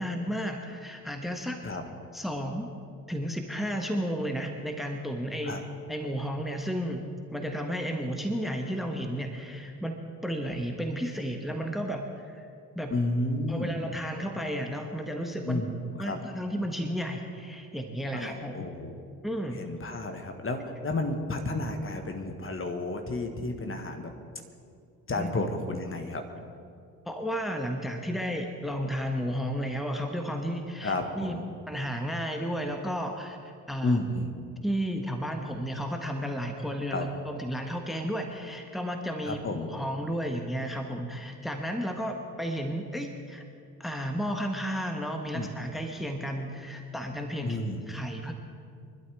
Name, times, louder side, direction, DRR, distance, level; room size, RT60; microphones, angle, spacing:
voice 1, 0.0-1.6 2.1-2.7 3.1-5.6 5.9-7.0 7.3-10.0 10.2-12.5 12.7-12.9 13.5-15.6 16.0-18.7 19.2-19.6 25.1-25.3 27.1-31.4 31.7-33.4 33.7-34.0 34.6-39.4 39.7-43.4 43.8-48.3, equal, ahead, 4 dB, 1.4 m, -33 dB
voice 2, 12.9-13.7 15.4-16.2 18.1-19.0 19.6-24.1 25.1-26.2 30.8-31.4 33.8-34.4 36.9-37.1 39.2-39.7 45.3-45.5 47.4-47.9, left 2 dB, 25° left, 5 dB, 1.7 m, -32 dB
25.0 x 12.0 x 3.6 m, 2.4 s
figure-of-eight pair, 50°, 47 cm